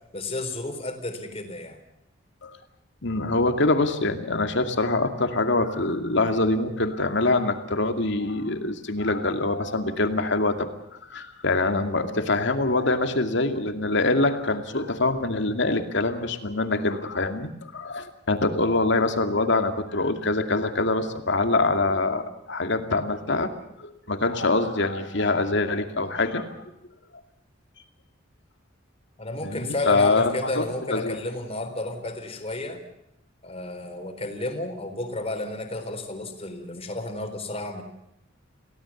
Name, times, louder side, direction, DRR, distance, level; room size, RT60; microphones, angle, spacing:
voice 1, 0.1-1.8 29.2-32.8 33.4-37.8, left 2 dB, 30° left, 6 dB, 4.0 m, -32 dB
voice 2, 3.0-10.7 11.1-23.5 23.8-26.7 29.4-31.2, left 2 dB, 65° left, 6 dB, 2.4 m, -24 dB
29.0 x 17.0 x 7.3 m, 0.82 s
head